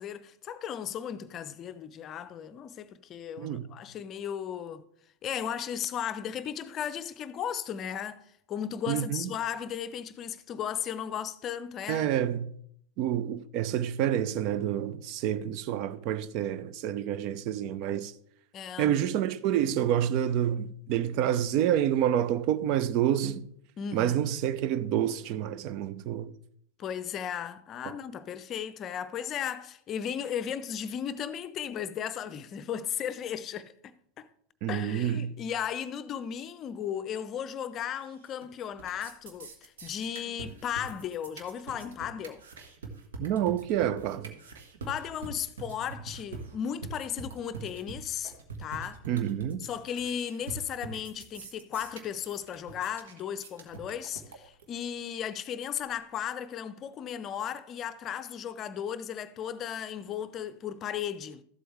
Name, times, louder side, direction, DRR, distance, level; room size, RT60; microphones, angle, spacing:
voice 1, 0.0-4.8 5.2-12.1 18.5-19.0 23.8-24.3 26.8-33.7 34.2-34.3 34.7-42.4 44.9-48.3 48.6-49.0 49.6-61.4, left 9 dB, 30° left, 0.5 m, -35 dB
voice 2, 8.9-9.3 11.9-12.5 13.0-18.1 18.8-23.4 23.9-26.3 34.6-35.3 43.2-44.4 49.1-49.6, right 10 dB, 40° right, 0.5 m, -28 dB
sound 1, 38.0-38.4 38.7-54.7, right 4 dB, 65° right, 1.3 m, -44 dB
13.5 x 7.7 x 3.2 m
figure-of-eight pair, 90°, 0 cm